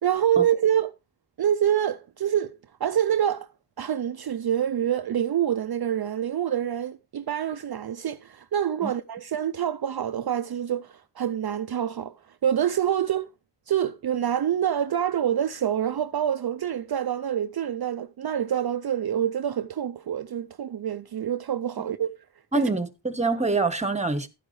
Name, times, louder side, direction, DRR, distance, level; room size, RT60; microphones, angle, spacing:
voice 1, 0.0-0.9 1.4-3.5 3.8-13.3 13.7-22.1 22.6-22.7, right 9 dB, 60° right, 0.5 m, -26 dB
voice 2, 22.5-24.3, right 3 dB, 15° right, 1.1 m, -25 dB
11.5 x 9.8 x 3.1 m
wide cardioid pair, 65°, 42 cm